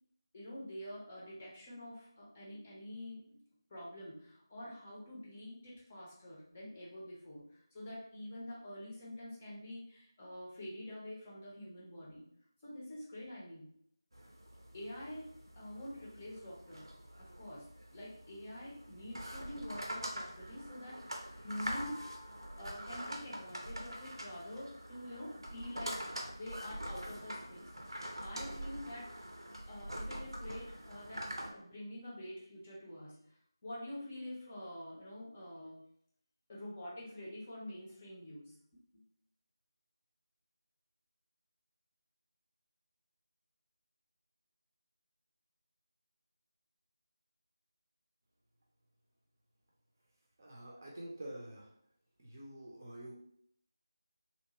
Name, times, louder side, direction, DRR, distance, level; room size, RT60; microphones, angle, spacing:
voice 1, 0.3-3.4 3.7-12.2 12.6-13.7 14.7-15.3 15.5-16.9 17.2-22.0 22.6-29.2 29.7-35.8 36.5-39.0 50.8-51.0, left 1 dB, 20° left, -6 dB, 0.7 m, -47 dB
sound 1, 14.1-31.5, right 1 dB, 75° right, 0.6 m, -45 dB
voice 2, 50.4-51.6 52.2-53.1, right 1 dB, 35° right, -3 dB, 0.6 m, -47 dB
2.8 x 2.2 x 2.8 m, 0.68 s
figure-of-eight pair, 165°, 2 cm